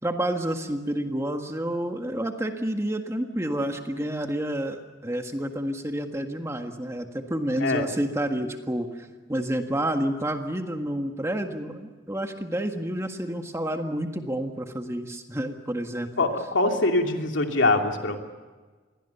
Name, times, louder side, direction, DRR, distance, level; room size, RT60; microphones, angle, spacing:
voice 1, 0.0-16.1, right 1 dB, 15° right, 5 dB, 1.7 m, -29 dB
voice 2, 16.2-18.2, left 2 dB, 90° left, 3 dB, 2.8 m, -23 dB
28.0 x 21.5 x 7.0 m, 1.4 s
head